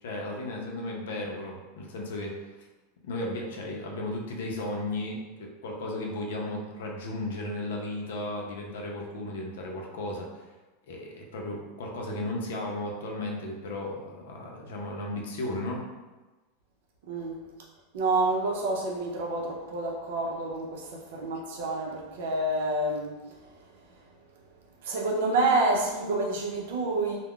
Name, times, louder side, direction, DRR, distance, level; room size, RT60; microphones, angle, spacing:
voice 1, 0.0-2.7 3.0-10.5 10.9-15.8, left 1 dB, 80° left, -1 dB, 0.5 m, -35 dB
voice 2, 17.1-17.4 17.9-23.2 24.8-27.2, right 2 dB, 65° right, -1 dB, 0.5 m, -28 dB
2.3 x 2.1 x 3.6 m, 1.2 s
supercardioid pair, 180°, 0 cm